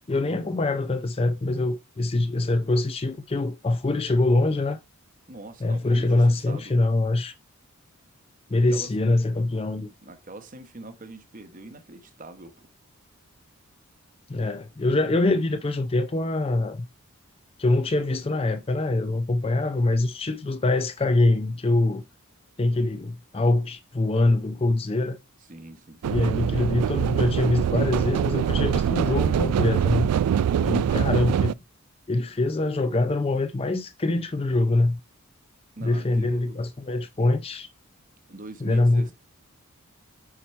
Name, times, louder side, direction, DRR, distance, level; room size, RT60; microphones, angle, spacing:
voice 1, 0.1-4.8 5.6-7.3 8.5-9.9 14.3-16.9 17.6-22.0 22.6-25.2 26.0-30.1 30.6-31.6 32.1-35.0 35.8-37.7 38.6-39.1, left 2 dB, 25° left, 0.4 m, -24 dB
voice 2, 5.3-6.7 8.7-8.9 10.0-12.7 25.5-26.4 30.6-31.0 35.8-36.6 38.3-39.1, right 2 dB, 35° right, 1.0 m, -43 dB
sound 1, 26.0-31.5, right 8 dB, 90° right, 0.3 m, -24 dB
7.4 x 4.3 x 4.5 m
head